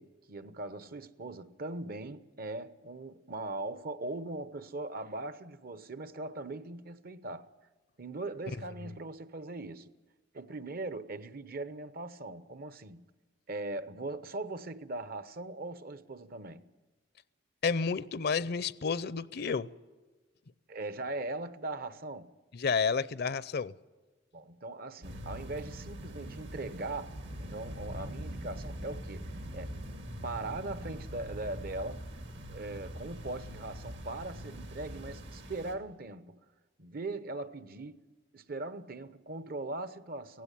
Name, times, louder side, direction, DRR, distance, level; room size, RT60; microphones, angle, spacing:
voice 1, 0.0-7.5 8.0-9.9 10.3-13.1 13.5-16.6 20.7-22.3 24.3-29.8 30.2-32.1 32.5-36.4 36.8-38.0 38.3-40.4, right 2 dB, 55° right, 1.0 m, -40 dB
voice 2, 17.6-19.7 22.5-23.7, left 5 dB, 60° left, 0.6 m, -30 dB
sound 1, 25.0-35.7, equal, 70° right, 2.7 m, -43 dB
17.5 x 16.0 x 10.0 m
head